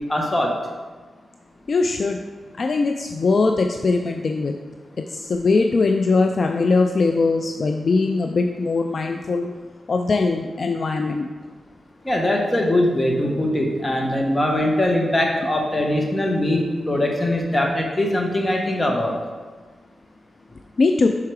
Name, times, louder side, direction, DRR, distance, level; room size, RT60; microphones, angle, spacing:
voice 1, 0.1-0.6 12.0-19.2, left 1 dB, 25° left, 0 dB, 1.3 m, -21 dB
voice 2, 1.7-2.2 2.6-4.5 5.1-9.5 9.9-11.3 20.8-21.1, left 3 dB, 55° left, 5 dB, 0.4 m, -20 dB
5.6 x 4.8 x 4.7 m, 1.4 s
cardioid pair, 60°, 0 cm